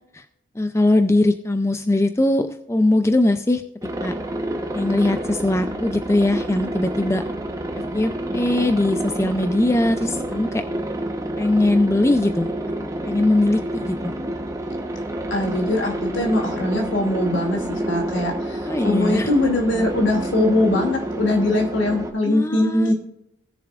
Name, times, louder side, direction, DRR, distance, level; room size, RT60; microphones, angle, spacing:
voice 1, 0.6-3.6 4.0-4.1 4.7-7.2 7.9-10.6 11.4-12.5 13.1-14.2 18.7-19.3 22.2-22.9, left 2 dB, 15° left, 8 dB, 0.4 m, -20 dB
Aircraft, 3.8-22.1, right 1 dB, 15° right, 1.1 m, -28 dB
voice 2, 15.3-22.9, left 1 dB, 70° left, 0 dB, 2.7 m, -21 dB
19.0 x 7.1 x 2.5 m, 0.84 s
head